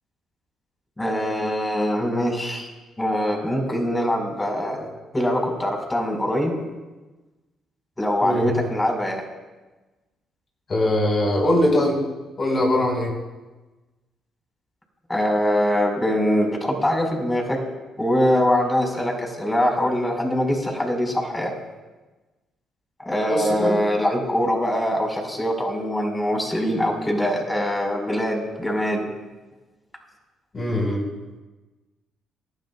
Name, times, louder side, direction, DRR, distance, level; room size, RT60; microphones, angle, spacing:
voice 1, 1.0-2.7 3.0-4.9 5.1-6.5 8.0-9.2 15.1-17.6 18.0-21.5 23.0-29.0, equal, 15° left, 2 dB, 5.0 m, -23 dB
voice 2, 8.2-8.5 10.7-12.0 12.4-13.1 23.3-23.8 30.5-31.0, left 1 dB, 40° left, -1 dB, 4.9 m, -21 dB
28.0 x 12.0 x 2.4 m, 1.2 s
hypercardioid pair, 50°, 0 cm